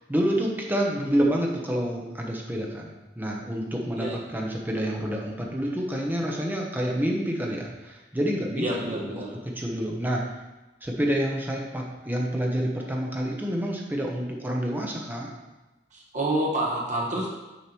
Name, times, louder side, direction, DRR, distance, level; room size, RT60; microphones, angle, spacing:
voice 1, 0.1-10.3 10.8-15.3, equal, 10° right, -1 dB, 1.0 m, -28 dB
voice 2, 8.5-9.3 15.9-17.3, right 1 dB, 40° right, -3 dB, 1.6 m, -28 dB
6.9 x 4.8 x 4.5 m, 1.1 s
head